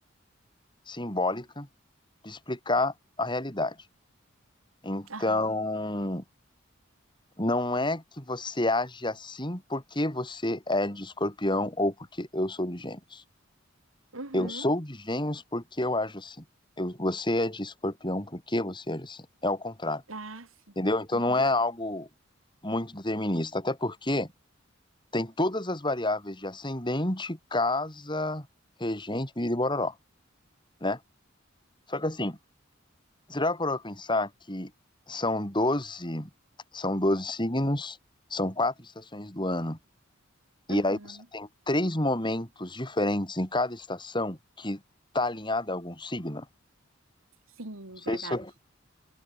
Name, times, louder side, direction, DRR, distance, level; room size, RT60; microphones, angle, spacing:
voice 1, 0.9-1.7 2.2-3.8 4.8-6.2 7.4-13.2 14.3-16.4 16.8-20.0 20.8-22.1 22.6-24.3 25.1-28.5 28.8-29.9 30.8-31.0 31.9-32.4 33.3-34.7 35.1-36.3 36.7-38.0 38.3-39.8 40.7-44.8 45.1-46.5 48.1-48.5, left 1 dB, 25° left, 6.1 m, -29 dB
voice 2, 5.1-5.5 14.1-14.6 20.1-20.5 21.1-21.4 40.7-41.2 47.6-48.4, right 2 dB, 80° right, 2.7 m, -40 dB
head